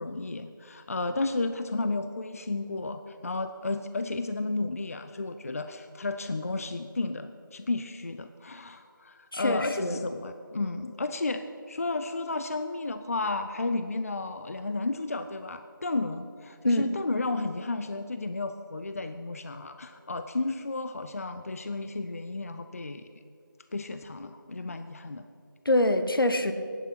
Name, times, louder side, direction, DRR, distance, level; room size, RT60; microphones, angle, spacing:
voice 1, 0.0-23.1 23.7-25.2, left 3 dB, 45° left, 9 dB, 0.4 m, -33 dB
voice 2, 9.3-10.0 16.6-16.9 25.6-26.5, left 1 dB, 85° left, 9 dB, 1.0 m, -25 dB
10.5 x 8.3 x 5.8 m, 2.5 s
figure-of-eight pair, 165°, 11 cm